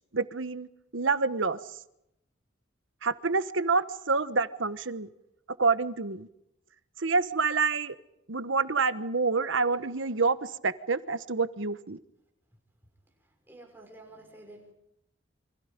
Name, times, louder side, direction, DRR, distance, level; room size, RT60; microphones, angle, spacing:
voice 1, 0.1-0.7 0.9-1.6 3.0-5.1 5.6-6.3 7.0-7.9 8.3-12.0, right 4 dB, 85° right, 1.2 m, -27 dB
voice 2, 13.5-14.7, right 1 dB, 10° right, 6.1 m, -50 dB
29.0 x 25.5 x 5.3 m
head